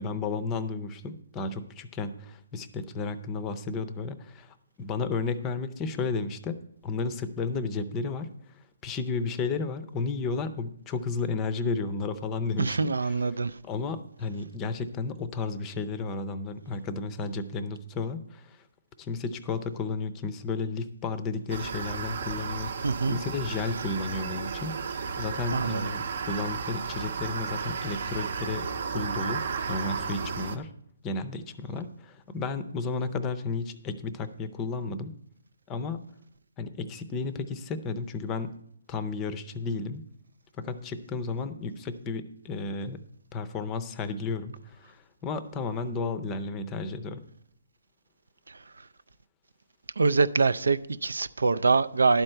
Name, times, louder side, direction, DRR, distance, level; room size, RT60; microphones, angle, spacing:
voice 1, 0.0-6.6 6.8-8.3 8.8-13.1 13.6-18.6 19.0-28.7 28.9-29.4 29.7-30.7 31.0-35.1 35.7-36.0 36.6-38.5 38.9-40.0 40.6-43.0 43.3-45.0 45.2-47.2, left 4 dB, 15° left, 0.6 m, -33 dB
voice 2, 12.6-13.6 22.8-23.2 25.5-25.9 48.5-48.6 50.0-52.2, right 4 dB, 90° right, 0.4 m, -24 dB
sound 1, 21.5-30.6, right 5 dB, 55° right, 0.7 m, -33 dB
11.5 x 4.4 x 7.7 m
hypercardioid pair, 160°, 0 cm